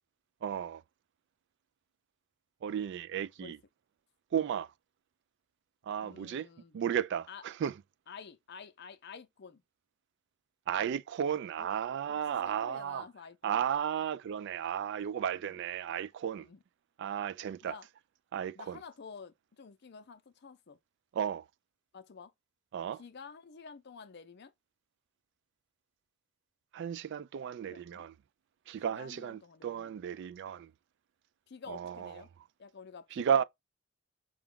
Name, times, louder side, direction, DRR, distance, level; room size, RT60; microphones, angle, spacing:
voice 1, 0.4-0.8 2.6-3.6 4.3-4.7 5.9-6.5 6.7-7.7 10.7-13.0 13.4-16.5 17.0-17.7 18.3-18.8 21.1-21.4 22.7-23.0 26.7-28.1 28.7-30.7 31.7-32.1 33.2-33.4, right 8 dB, 60° right, 0.3 m, -34 dB
voice 2, 6.0-6.8 7.3-7.4 8.1-9.6 11.6-11.7 12.1-13.6 15.3-15.6 16.4-16.6 17.6-17.9 18.5-20.8 21.9-22.3 22.9-24.5 27.7-28.1 28.8-30.0 31.5-32.3 32.6-33.4, left 5 dB, 55° left, 0.5 m, -50 dB
4.9 x 2.3 x 3.6 m
head